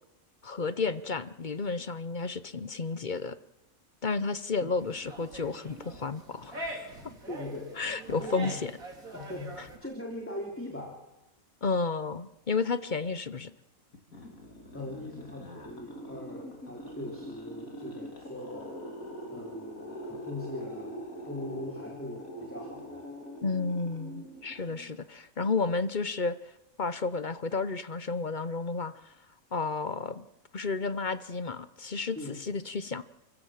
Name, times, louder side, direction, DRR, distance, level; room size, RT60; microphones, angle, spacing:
voice 1, 0.4-3.4 4.0-6.9 7.8-8.7 11.6-13.5 23.4-26.4 26.8-29.1 29.5-30.2 30.5-33.0, left 4 dB, 40° left, 14 dB, 0.9 m, -32 dB
sound 1, 4.8-9.8, right 1 dB, 85° right, 3.8 m, -43 dB
voice 2, 7.3-8.6 9.1-11.0 14.7-18.8 19.3-21.0 21.2-23.0 32.2-32.4, left 2 dB, 10° left, 0 dB, 3.1 m, -41 dB
sound 2, 13.9-25.1, equal, 90° left, 4.1 m, -43 dB
30.0 x 15.0 x 7.6 m, 0.99 s
omnidirectional pair, 1.4 m